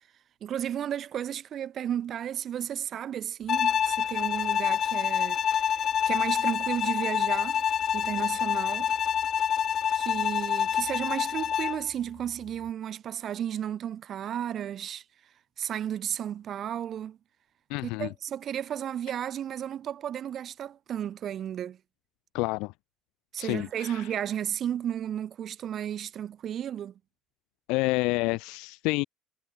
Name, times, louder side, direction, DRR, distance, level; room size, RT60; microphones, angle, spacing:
voice 1, 0.4-7.6 7.9-8.9 9.9-15.0 15.6-17.2 17.8-21.8 23.3-26.9, right 10 dB, 45° right, 1.1 m, -33 dB
Bowed string instrument, 3.5-11.9, left 8 dB, 40° left, 0.7 m, -27 dB
voice 2, 17.7-18.1 22.3-22.7 23.4-24.1 27.7-29.0, left 25 dB, 85° left, 0.4 m, -29 dB
cardioid pair, 125°, 0 cm